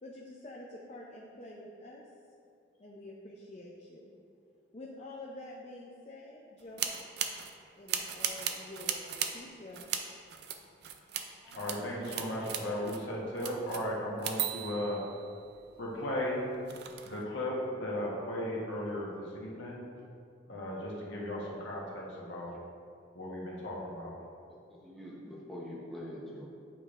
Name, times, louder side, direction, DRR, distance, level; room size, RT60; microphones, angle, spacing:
voice 1, 0.0-2.0 2.8-4.1 4.7-6.9 7.8-10.0, left 1 dB, 35° left, -3 dB, 0.5 m, -47 dB
sound 1, 6.8-7.5 7.9-9.3 9.7-10.0 10.3-11.2 11.5-11.8 12.0-13.0 13.4-15.8 16.3-17.2, right 9 dB, 55° right, 0.4 m, -36 dB
voice 2, 11.4-15.0 15.8-16.4 17.0-19.8 20.5-22.5 23.1-24.1, left 1 dB, 70° left, -3 dB, 1.2 m, -36 dB
voice 3, 24.7-26.5, left 1 dB, ahead, -7 dB, 0.8 m, -44 dB
8.5 x 5.1 x 2.5 m, 2.3 s
head